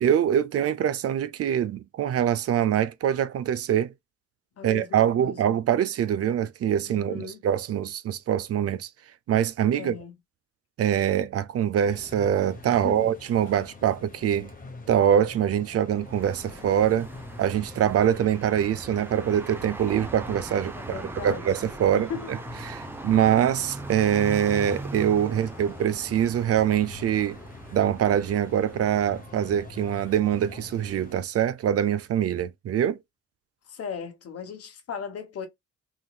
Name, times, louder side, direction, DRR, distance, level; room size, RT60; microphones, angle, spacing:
voice 1, 0.0-3.9 4.6-8.9 9.3-9.9 10.8-14.5 14.9-17.1 17.4-22.4 22.6-27.4 27.7-33.0, right 9 dB, 50° right, 0.5 m, -24 dB
voice 2, 4.6-5.4 6.9-7.4 9.7-10.1 12.7-13.1 20.7-21.5 22.1-22.4 33.7-35.5, left 6 dB, 50° left, 1.1 m, -37 dB
sound 1, 11.8-31.2, left 2 dB, 30° left, 1.0 m, -45 dB
sound 2, 16.0-29.3, right 2 dB, 5° right, 0.6 m, -41 dB
3.8 x 3.0 x 2.2 m
cardioid pair, 90°, 30 cm